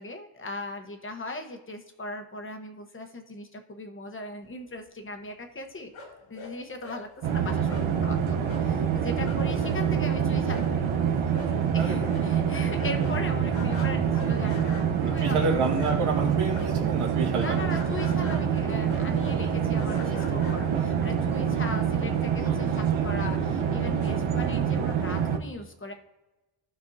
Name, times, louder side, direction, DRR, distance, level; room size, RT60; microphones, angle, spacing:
voice 1, 0.0-5.9 6.3-10.9 11.7-15.5 17.4-25.9, left 2 dB, 25° left, 5 dB, 1.1 m, -39 dB
sound 1, 5.9-6.5 6.8-7.0 7.7-7.9 8.5-8.7 8.9-9.0 9.2-16.2 16.5-21.0, left 2 dB, 80° left, 2.4 m, -43 dB
sound 2, 7.2-25.4, right 7 dB, 70° right, 1.0 m, -26 dB
voice 2, 9.7-10.0 11.8-12.1 15.0-17.7 20.7-20.9 21.3-21.5, right 4 dB, 85° right, 0 dB, 2.1 m, -29 dB
15.0 x 5.2 x 2.8 m, 1.1 s
cardioid pair, 115°, 49 cm